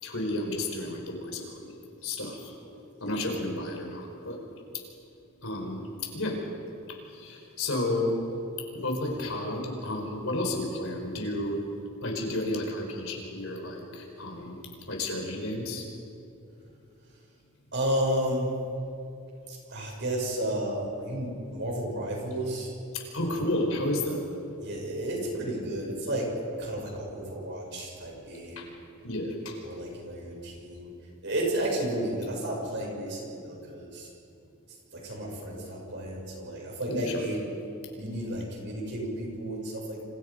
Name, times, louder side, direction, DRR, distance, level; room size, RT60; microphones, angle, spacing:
voice 1, 0.0-1.7 2.0-2.7 3.0-4.4 5.4-6.4 7.1-8.1 8.8-11.6 12.0-14.6 14.9-15.8 22.9-24.2 28.6-28.7 29.0-29.6 36.9-37.2, left 1 dB, 65° left, 2 dB, 5.1 m, -32 dB
voice 2, 17.7-18.5 19.5-22.7 23.2-23.4 24.6-26.3 26.6-28.7 29.6-30.9 31.2-34.1 34.9-37.4 37.9-40.0, right 1 dB, 55° right, -1 dB, 7.5 m, -32 dB
28.0 x 27.5 x 5.4 m, 2.7 s
head